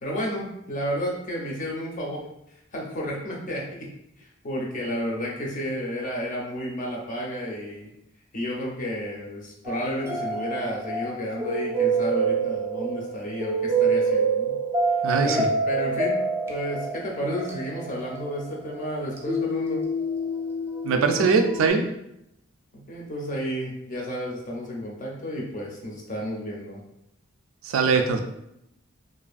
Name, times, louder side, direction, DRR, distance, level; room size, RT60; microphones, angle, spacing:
voice 1, 0.0-2.2 2.7-3.9 4.2-7.9 8.3-14.6 15.2-16.2 16.5-19.8 22.7-26.8, equal, 40° left, -2 dB, 0.5 m, -32 dB
sound 1, 9.6-21.7, right 3 dB, 15° right, 0.4 m, -27 dB
voice 2, 15.0-15.5 20.8-21.8 27.6-28.2, right 5 dB, 85° right, 6 dB, 0.3 m, -21 dB
2.5 x 2.4 x 2.4 m, 0.81 s
head